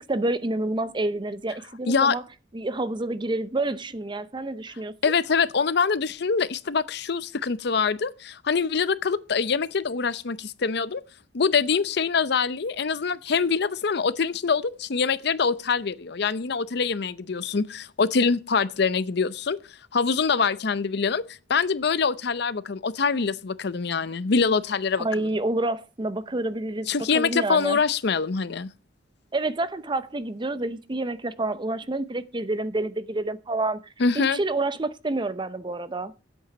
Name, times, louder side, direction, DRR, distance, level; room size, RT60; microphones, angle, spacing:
voice 1, 0.0-2.2 2.5-4.9 25.0-26.9 27.1-27.8 29.3-33.8 34.2-36.1, right 2 dB, 25° right, 0.7 m, -28 dB
voice 2, 5.0-11.0 11.3-19.6 19.9-25.3 26.9-28.7 34.0-34.4, left 5 dB, 65° left, 0.6 m, -24 dB
9.5 x 8.2 x 5.9 m
head